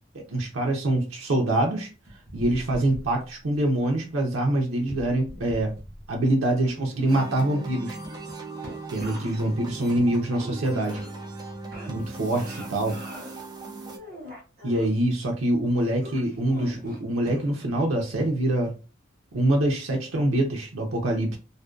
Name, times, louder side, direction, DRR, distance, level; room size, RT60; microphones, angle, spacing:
voice 1, 0.1-1.9 2.3-5.8 6.1-8.0 8.9-11.0 11.9-13.0 14.6-18.7 19.3-21.4, right 1 dB, 85° right, 1 dB, 0.6 m, -25 dB
sound 1, 2.1-3.6 4.8-6.2 6.5-11.4 11.7-13.4 13.8-14.9 16.0-17.8 18.2-18.3, equal, 45° right, 0.7 m, -43 dB
Far East Glitch Releases, 7.1-14.0, right 3 dB, 20° right, 0.3 m, -39 dB
2.5 x 2.1 x 2.3 m, 0.32 s
head